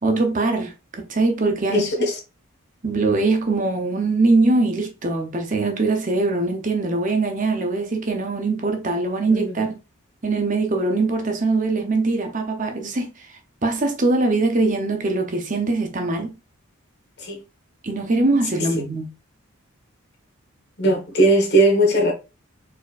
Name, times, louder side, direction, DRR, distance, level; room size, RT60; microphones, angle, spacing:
voice 1, 0.0-1.8 2.8-9.7 10.2-13.3 13.6-16.3 17.8-19.1, right 3 dB, 35° right, 0.7 m, -22 dB
voice 2, 1.7-2.2 9.3-9.6 17.2-17.4 18.5-18.7 20.8-22.1, right 1 dB, 50° left, 1.4 m, -19 dB
4.3 x 4.2 x 2.4 m
head